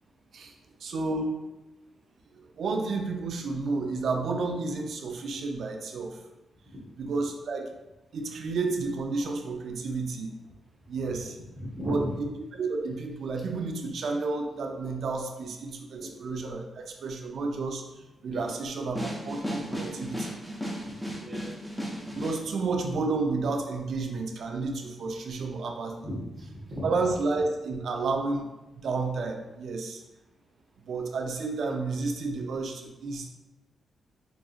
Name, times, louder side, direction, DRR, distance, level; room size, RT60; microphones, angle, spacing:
voice 1, 0.8-1.4 2.3-6.2 7.0-7.7 8.1-10.3 10.9-11.4 11.9-20.4 22.1-26.0 26.8-28.5 28.7-30.0 30.9-33.3, right 3 dB, 65° right, 3 dB, 0.4 m, -31 dB
voice 2, 11.5-12.1 16.0-16.1 18.3-18.5 21.2-21.5 26.0-26.9, equal, 20° right, -5 dB, 0.9 m, -36 dB
sound 1, 19.0-22.4, equal, 5° left, 0.5 m, -35 dB
4.0 x 2.4 x 2.4 m, 1.0 s
wide cardioid pair, 145°, 0 cm